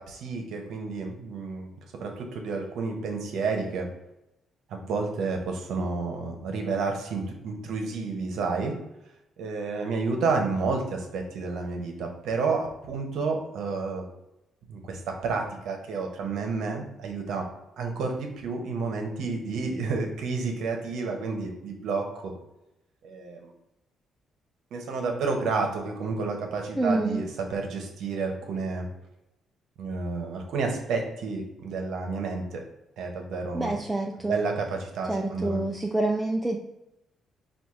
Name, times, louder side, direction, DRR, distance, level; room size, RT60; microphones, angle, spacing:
voice 1, 0.0-1.7 2.0-3.9 4.7-8.7 9.4-14.1 14.7-17.5 17.8-22.3 23.0-23.5 24.7-28.9 29.8-32.6 33.0-33.7 34.2-35.6, right 4 dB, 80° right, 2 dB, 0.9 m, -30 dB
voice 2, 26.8-27.2 33.5-34.4 35.1-36.6, right 2 dB, 10° right, 0 dB, 0.4 m, -27 dB
4.6 x 2.5 x 3.6 m, 0.90 s
cardioid pair, 90°, 0 cm